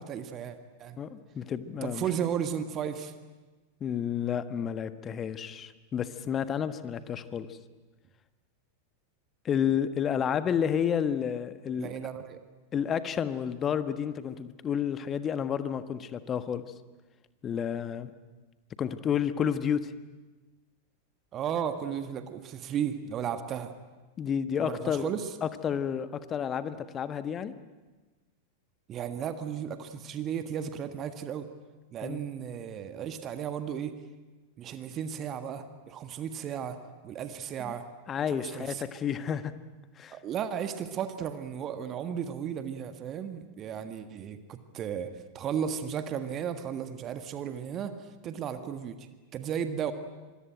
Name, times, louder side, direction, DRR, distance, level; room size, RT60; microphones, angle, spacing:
voice 1, 0.0-1.0 1.8-3.1 11.8-12.4 21.3-23.7 24.6-25.3 28.9-31.5 31.9-33.9 34.6-37.9 38.3-38.9 40.1-49.9, right 8 dB, 30° right, 9 dB, 1.6 m, -34 dB
voice 2, 1.0-2.0 3.8-7.6 9.4-11.9 12.7-16.6 17.4-18.1 18.8-19.9 24.2-25.1 25.4-27.5 32.0-32.2 37.6-37.7 38.1-39.5 40.0-40.2, left 8 dB, 25° left, 12 dB, 1.4 m, -30 dB
26.0 x 22.0 x 9.1 m, 1.2 s
figure-of-eight pair, 90°, 0 cm